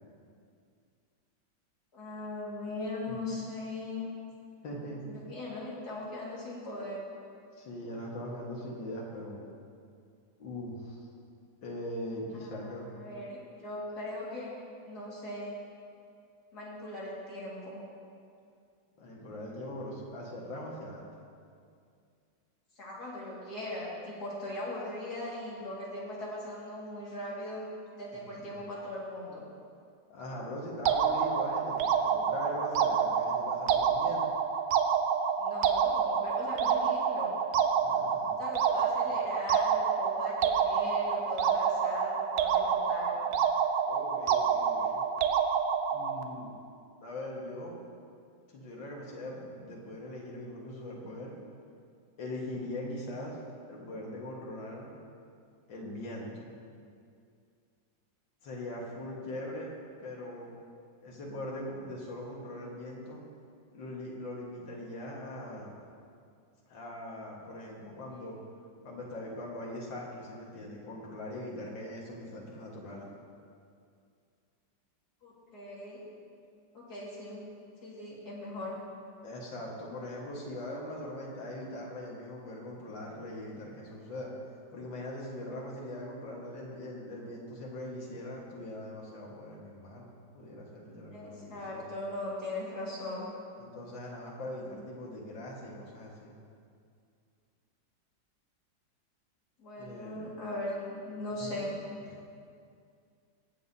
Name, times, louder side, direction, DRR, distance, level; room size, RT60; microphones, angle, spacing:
voice 1, 1.9-4.1 5.1-7.0 12.3-14.6 14.9-15.6 16.5-17.8 22.8-27.6 27.9-29.4 35.4-37.4 38.4-43.2 75.2-76.1 76.7-77.5 77.8-78.8 91.1-93.3 99.6-101.8, left 1 dB, 55° left, -6 dB, 2.6 m, -39 dB
voice 2, 4.6-5.3 7.6-9.4 10.4-11.1 11.6-12.9 19.0-21.1 28.1-28.6 30.1-34.3 37.8-38.4 43.8-45.0 45.9-46.5 47.0-47.8 48.5-51.4 52.2-53.4 53.7-55.0 55.7-56.5 58.4-59.7 60.0-60.6 61.0-63.2 63.7-65.8 66.7-68.4 68.8-73.1 79.2-84.3 84.7-91.9 93.6-96.3 99.8-100.3 101.4-101.7 102.1-102.2, left 1 dB, 75° left, -3 dB, 2.2 m, -41 dB
sound 1, 30.9-46.2, right 7 dB, 70° right, 1.2 m, -28 dB
20.5 x 7.2 x 2.8 m, 2.3 s
omnidirectional pair, 2.1 m